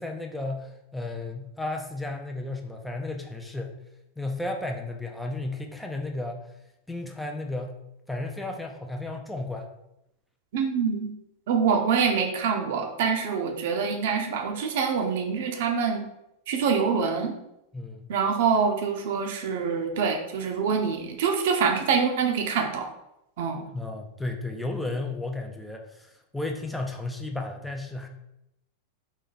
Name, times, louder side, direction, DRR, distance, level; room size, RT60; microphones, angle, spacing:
voice 1, 0.0-3.8 4.2-6.5 6.9-7.8 8.1-9.7 17.7-18.1 23.7-28.1, left 2 dB, 5° left, 2 dB, 0.5 m, -33 dB
voice 2, 10.5-11.1 11.5-16.1 16.5-17.3 18.1-22.9 23.4-23.7, right 6 dB, 55° right, 3 dB, 0.7 m, -25 dB
4.2 x 3.0 x 3.9 m, 0.85 s
figure-of-eight pair, 90°, 0 cm